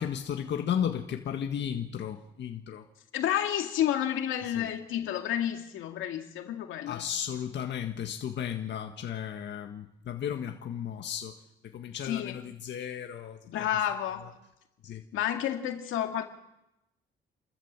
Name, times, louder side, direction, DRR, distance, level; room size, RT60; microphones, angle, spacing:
voice 1, 0.0-2.8 4.5-4.7 6.9-11.3 11.7-13.4 14.8-15.0, left 9 dB, 65° left, 4 dB, 1.7 m, -34 dB
voice 2, 3.1-7.0 12.0-12.4 13.5-14.3 15.1-16.2, left 11 dB, 85° left, 5 dB, 2.2 m, -30 dB
29.0 x 14.0 x 7.5 m, 0.89 s
cardioid pair, 90°, 20 cm